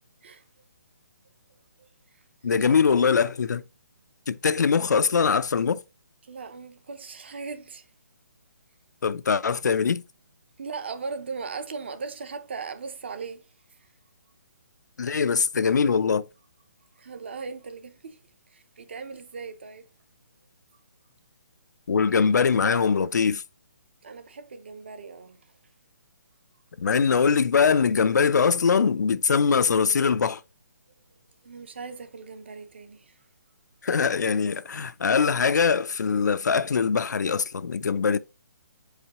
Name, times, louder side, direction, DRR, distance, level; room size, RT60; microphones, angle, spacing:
voice 1, 1.8-2.2 2.7-2.9 6.2-7.9 10.6-13.9 17.0-18.2 18.5-19.9 24.0-25.4 31.4-33.2, right 4 dB, 40° right, 0.7 m, -38 dB
voice 2, 2.4-3.6 4.3-5.8 9.0-10.0 15.0-16.3 21.9-23.4 26.8-30.4 33.8-38.2, left 5 dB, 75° left, 0.5 m, -22 dB
7.9 x 4.9 x 2.8 m
hypercardioid pair, 175°, 10 cm